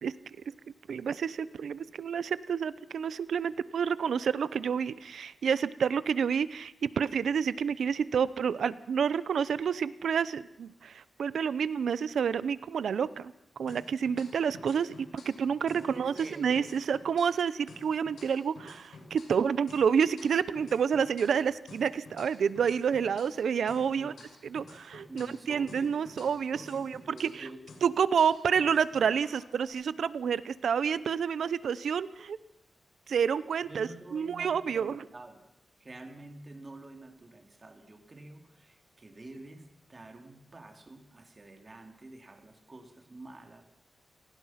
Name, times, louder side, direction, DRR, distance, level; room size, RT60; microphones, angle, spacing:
voice 1, 0.9-13.3 13.6-24.1 24.5-27.5 27.8-32.4 33.1-35.0, right 7 dB, 80° right, 16 dB, 0.8 m, -29 dB
sound 1, 13.7-15.4 15.7-19.4 19.7-23.4 23.7-27.4 27.7-29.7, left 3 dB, 80° left, 6.5 m, -52 dB
voice 2, 15.4-16.6 23.9-24.3 25.1-27.6 33.7-35.4 35.8-43.6, right 2 dB, 25° right, 4 dB, 2.9 m, -48 dB
28.5 x 19.0 x 5.9 m, 0.81 s
wide cardioid pair, 165°, 0 cm